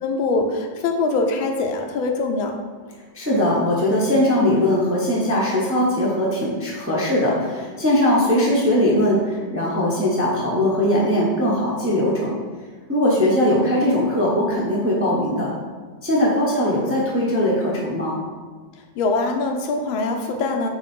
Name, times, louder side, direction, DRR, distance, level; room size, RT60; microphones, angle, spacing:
voice 1, 0.0-2.5 18.8-20.7, left 3 dB, 80° left, 4 dB, 1.5 m, -23 dB
voice 2, 3.1-12.3 12.9-15.5 16.0-18.2, left 1 dB, 10° right, -5 dB, 0.7 m, -20 dB
7.2 x 3.4 x 4.5 m, 1.4 s
omnidirectional pair, 2.1 m